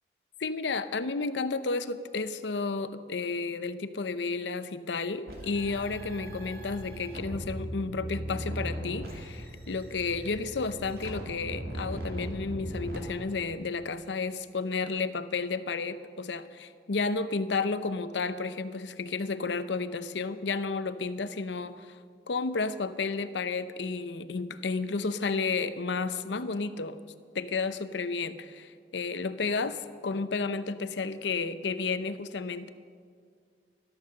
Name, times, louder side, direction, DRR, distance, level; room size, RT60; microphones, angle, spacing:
voice 1, 0.4-22.0 22.3-27.0 27.3-32.7, left 4 dB, 90° left, 13 dB, 0.7 m, -32 dB
sound 1, 5.3-13.0, equal, 55° right, 2.4 m, -38 dB
13.5 x 12.5 x 6.5 m, 2.1 s
head